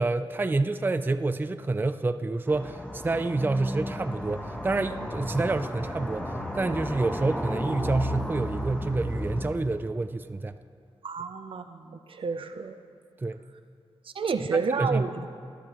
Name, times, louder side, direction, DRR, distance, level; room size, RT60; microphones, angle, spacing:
voice 1, 0.0-10.5 13.2-13.4 14.5-15.1, right 3 dB, 20° right, 10 dB, 0.4 m, -28 dB
sound 1, 2.5-9.5, equal, 10° left, 1.3 m, -34 dB
voice 2, 11.0-12.8 14.1-15.3, right 5 dB, 65° right, 8 dB, 0.6 m, -30 dB
18.5 x 11.0 x 3.0 m, 2.2 s
cardioid pair, 75°, 10 cm